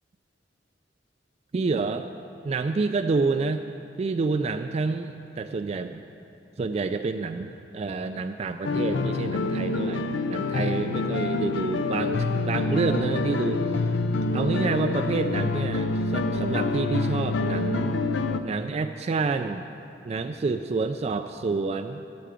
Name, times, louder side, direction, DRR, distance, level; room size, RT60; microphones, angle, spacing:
voice 1, 1.5-2.1 2.4-3.7 4.0-6.0 6.6-13.7 14.3-18.0 18.4-19.7 20.0-22.0, right 4 dB, 35° right, 7 dB, 0.3 m, -28 dB
sound 1, 8.6-18.4, left 3 dB, 85° left, 0.5 m, -26 dB
8.4 x 7.9 x 8.9 m, 2.7 s
head